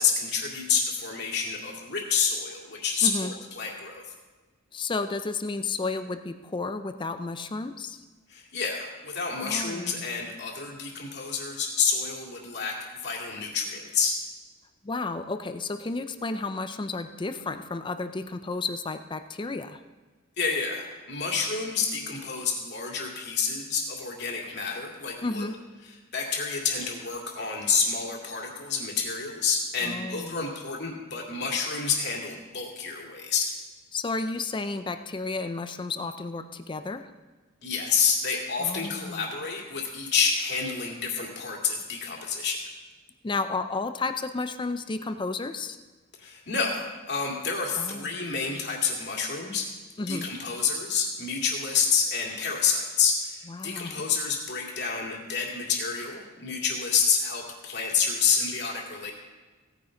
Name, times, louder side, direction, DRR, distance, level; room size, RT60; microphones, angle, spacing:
voice 1, 0.0-4.0 8.3-14.2 20.4-25.5 25.8-33.5 37.6-42.6 46.2-49.7 50.1-59.1, left 5 dB, 55° left, 0 dB, 2.2 m, -28 dB
voice 2, 3.0-3.3 4.7-8.0 9.4-10.1 14.8-19.8 25.2-25.6 29.8-30.4 33.9-37.1 38.6-39.3 43.2-45.8 47.8-48.1 50.0-50.3 53.5-54.1, left 3 dB, 20° left, 9 dB, 0.4 m, -32 dB
16.5 x 9.5 x 3.8 m, 1.3 s
head